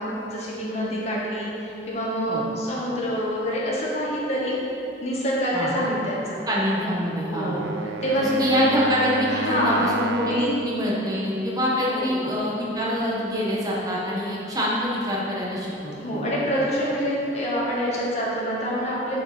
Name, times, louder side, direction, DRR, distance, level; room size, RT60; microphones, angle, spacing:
voice 1, 0.0-4.6 5.0-6.4 7.1-8.7 9.3-9.9 10.3-10.5 11.9-12.2 16.0-19.2, equal, 35° left, -6 dB, 1.9 m, -26 dB
voice 2, 6.5-7.6 8.2-16.3, left 1 dB, 20° right, -5 dB, 1.5 m, -25 dB
Wind instrument woodwind instrument, 7.2-10.8, right 4 dB, 70° right, 0.4 m, -32 dB
8.7 x 6.7 x 5.2 m, 2.9 s
head